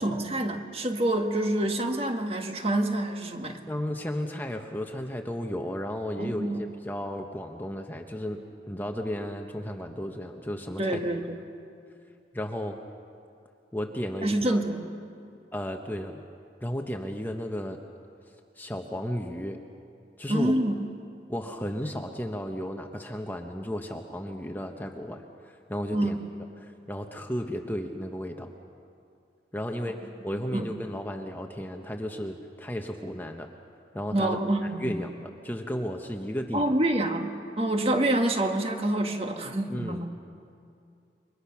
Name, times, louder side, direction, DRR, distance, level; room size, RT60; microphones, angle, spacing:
voice 1, 0.0-3.6 6.2-6.6 10.8-11.4 14.2-14.9 20.3-20.9 25.9-26.2 30.3-30.7 34.1-35.0 36.5-40.1, right 1 dB, 35° right, 4 dB, 1.6 m, -27 dB
voice 2, 3.7-8.4 8.7-11.0 12.3-12.8 13.7-14.6 15.5-16.2 16.6-17.8 18.6-19.6 20.2-20.5 21.3-26.1 26.6-28.5 29.5-30.0 30.2-33.5 33.9-36.6 39.7-40.1, equal, 10° left, 4 dB, 1.1 m, -34 dB
29.0 x 23.5 x 5.9 m, 2.5 s
head